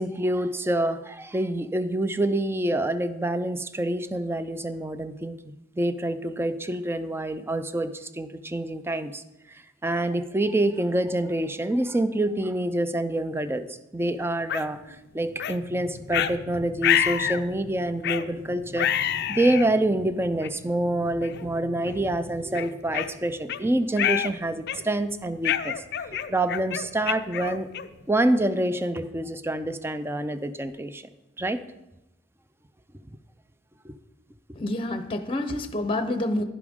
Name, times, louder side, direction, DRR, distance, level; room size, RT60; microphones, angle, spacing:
voice 1, 0.0-9.2 9.5-13.7 13.9-27.7 28.1-31.0 31.4-31.6 33.8-34.0, right 1 dB, 15° right, 12 dB, 0.5 m, -27 dB
sound 1, 14.5-14.6 15.4-15.6 16.1-16.3 16.8-17.4 18.0-18.3 18.8-19.7 20.4-20.5 21.2-21.4 21.9-22.0 22.5-23.6 24.0-24.3 24.7-25.0 25.4-28.0, left 10 dB, 60° left, 0.4 m, -27 dB
sound 2, 15.0-23.0, left 1 dB, 70° right, 4.4 m, -45 dB
voice 2, 34.5-36.4, left 1 dB, 30° left, 8 dB, 0.7 m, -28 dB
11.0 x 11.0 x 3.6 m, 0.93 s
head